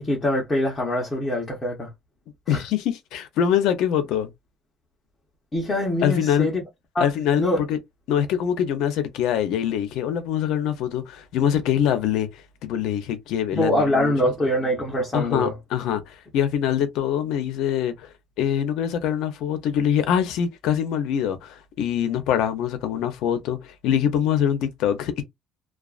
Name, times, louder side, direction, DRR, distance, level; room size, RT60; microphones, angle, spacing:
voice 1, 0.0-1.9 2.5-2.6 5.5-6.6 6.9-7.1 7.4-7.6 13.5-15.5, left 1 dB, 20° left, 0.8 m, -24 dB
voice 2, 2.5-4.3 6.0-6.5 7.0-7.8 8.1-12.3 12.6-14.1 14.4-14.5 15.1-18.1 18.4-25.2, left 9 dB, 80° left, 0.6 m, -24 dB
2.4 x 2.3 x 2.4 m
cardioid pair, 140°, 0 cm